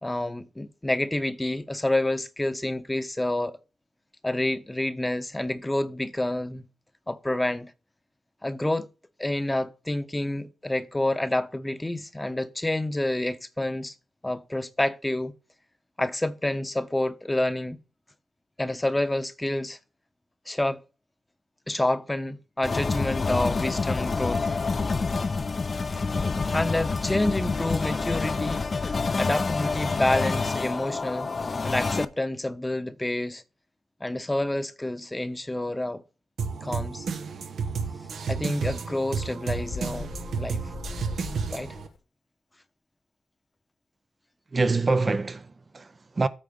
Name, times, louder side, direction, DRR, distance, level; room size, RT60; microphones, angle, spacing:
voice 1, 0.0-3.6 4.2-6.6 7.1-7.7 8.4-8.9 9.2-13.9 14.2-15.3 16.0-17.8 18.6-19.8 20.5-20.8 21.7-24.5 26.5-31.3 31.6-33.4 34.0-36.0 36.6-37.1 38.3-40.1 40.4-40.6 41.5-41.8, left 1 dB, 15° left, 0.9 m, -28 dB
sound 1, 22.6-32.0, left 4 dB, 45° left, 0.7 m, -27 dB
sound 2, 36.4-41.9, right 5 dB, 80° right, 1.1 m, -32 dB
Bird, 39.5-42.0, left 4 dB, 80° left, 1.9 m, -39 dB
voice 2, 44.5-46.3, right 3 dB, 40° right, 0.6 m, -25 dB
8.8 x 3.5 x 6.5 m
cardioid pair, 60°, 0 cm